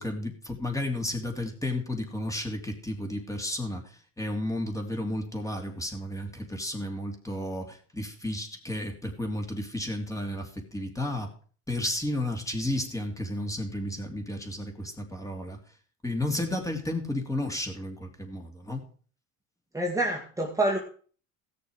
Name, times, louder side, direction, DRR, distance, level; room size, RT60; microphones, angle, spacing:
voice 1, 0.0-11.3 11.7-15.6 16.0-18.9, left 1 dB, 10° left, 4 dB, 2.9 m, -32 dB
voice 2, 19.7-20.8, right 1 dB, 10° right, -1 dB, 2.1 m, -27 dB
16.5 x 6.9 x 4.9 m, 0.43 s
supercardioid pair, 100°, 34 cm